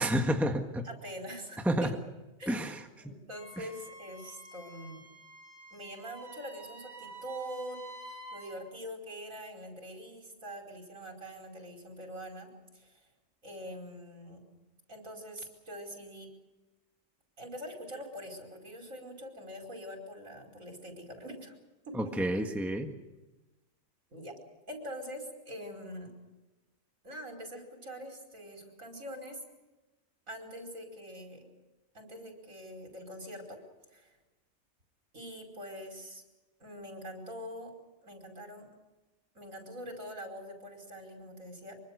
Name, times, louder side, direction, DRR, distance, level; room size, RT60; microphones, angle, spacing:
voice 1, 0.0-0.8 1.6-1.9 2.5-2.8 22.0-22.9, right 1 dB, ahead, 4 dB, 1.5 m, -29 dB
voice 2, 0.8-1.9 2.4-2.5 3.0-5.0 5.7-7.8 8.3-12.5 12.7-13.0 13.4-14.4 14.9-16.3 17.4-21.6 21.9-22.2 24.1-24.3 24.7-26.1 27.0-29.4 30.3-31.5 31.9-33.6 33.9-34.2 35.1-36.2 36.6-37.7 38.0-38.7 39.3-41.8, equal, 85° right, 2 dB, 5.5 m, -44 dB
Wind instrument woodwind instrument, 3.3-8.6, right 2 dB, 55° right, 5.8 m, -49 dB
25.0 x 24.0 x 6.7 m, 1.1 s
omnidirectional pair, 1.4 m